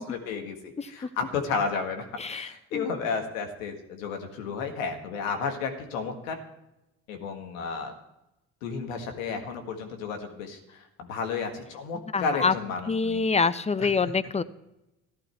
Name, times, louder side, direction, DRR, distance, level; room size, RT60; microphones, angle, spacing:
voice 1, 0.0-6.4 7.1-7.9 8.6-13.2 13.8-13.9, left 5 dB, 85° left, 5 dB, 1.9 m, -32 dB
voice 2, 2.2-2.9 12.1-12.5 12.9-14.4, left 4 dB, 15° left, 15 dB, 0.7 m, -26 dB
15.0 x 11.5 x 4.5 m, 0.91 s
hypercardioid pair, 60°, 39 cm